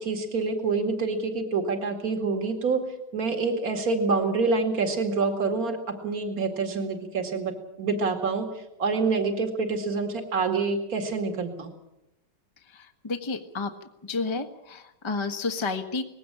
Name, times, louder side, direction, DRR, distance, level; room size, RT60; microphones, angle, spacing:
voice 1, 0.0-2.8 3.1-11.7, right 4 dB, 55° right, 5 dB, 2.7 m, -27 dB
voice 2, 12.7-13.7 14.0-16.0, left 3 dB, 20° left, 5 dB, 1.2 m, -31 dB
20.0 x 16.5 x 8.8 m, 0.89 s
omnidirectional pair, 1.9 m